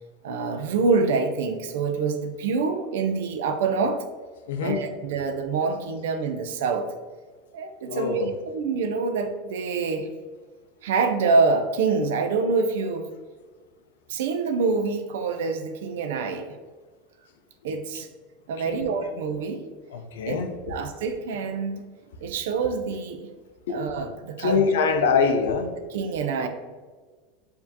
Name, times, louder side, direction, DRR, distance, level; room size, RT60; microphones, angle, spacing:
voice 1, 0.2-4.0 4.6-6.9 7.5-8.3 8.5-10.1 10.8-13.1 14.1-16.6 17.6-18.1 18.5-19.6 20.3-20.4 20.7-21.9 22.2-23.3 23.7-24.9 25.9-26.5, right 4 dB, 75° right, 7 dB, 0.4 m, -26 dB
voice 2, 4.5-4.8 7.9-8.3 18.6-18.8 19.9-20.6 23.7-24.0 24.4-25.7, left 5 dB, 80° left, 6 dB, 0.4 m, -24 dB
4.8 x 2.6 x 2.7 m, 1.4 s
hypercardioid pair, 100°, 0 cm